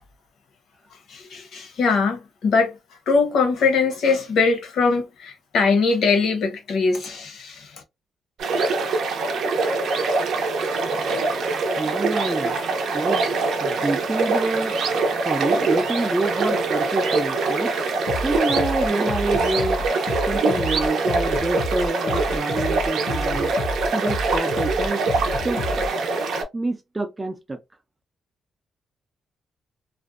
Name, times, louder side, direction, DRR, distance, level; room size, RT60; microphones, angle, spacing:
voice 1, 1.1-2.7 3.1-7.8, left 4 dB, 70° left, 0.9 m, -21 dB
sound 1, 8.4-26.4, right 3 dB, 70° right, 0.5 m, -24 dB
voice 2, 11.8-12.6 12.9-13.2 13.6-14.8 15.3-17.7 18.2-19.9 20.3-23.5 23.9-25.0 25.4-25.9 26.5-27.6, right 2 dB, 15° right, 0.4 m, -27 dB
sound 2, 18.1-25.9, left 2 dB, 55° left, 0.5 m, -30 dB
2.5 x 2.1 x 2.4 m
cardioid pair, 145°, 0 cm